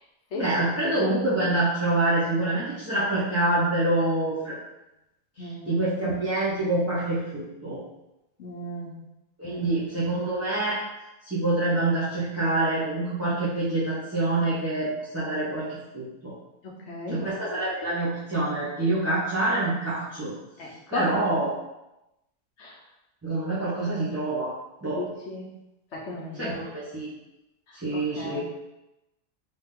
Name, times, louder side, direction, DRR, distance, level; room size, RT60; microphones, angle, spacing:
voice 1, 0.3-4.5 5.7-7.8 9.4-10.8 11.2-16.3 17.1-20.3 20.9-21.5 23.2-24.6 24.8-25.0 26.4-27.1 27.8-28.4, right 2 dB, 15° right, -11 dB, 0.6 m, -26 dB
voice 2, 5.4-5.8 8.4-8.9 9.4-9.6 16.6-17.3 20.6-21.1 22.6-22.7 25.0-25.5 25.9-26.6 27.7-28.4, left 1 dB, 60° left, -2 dB, 0.9 m, -35 dB
3.4 x 2.7 x 3.6 m, 0.93 s
omnidirectional pair, 1.5 m